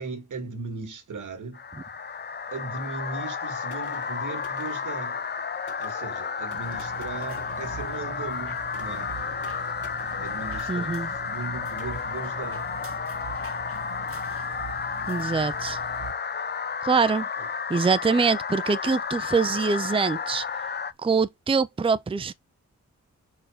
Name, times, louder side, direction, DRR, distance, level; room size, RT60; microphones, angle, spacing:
voice 1, 0.0-1.6 2.5-5.2 5.8-9.1 10.2-12.7 17.4-17.5, right 4 dB, 85° right, 1.9 m, -37 dB
sound 1, 1.5-20.9, left 6 dB, 35° left, 0.5 m, -32 dB
sound 2, 3.7-13.4, left 5 dB, 80° left, 2.0 m, -50 dB
sound 3, 6.5-16.1, right 7 dB, 50° right, 0.8 m, -42 dB
voice 2, 10.7-11.1 15.1-15.8 16.8-17.3 17.7-20.5 21.0-22.3, right 5 dB, 20° right, 0.5 m, -24 dB
5.8 x 4.6 x 4.8 m
wide cardioid pair, 120°, 30 cm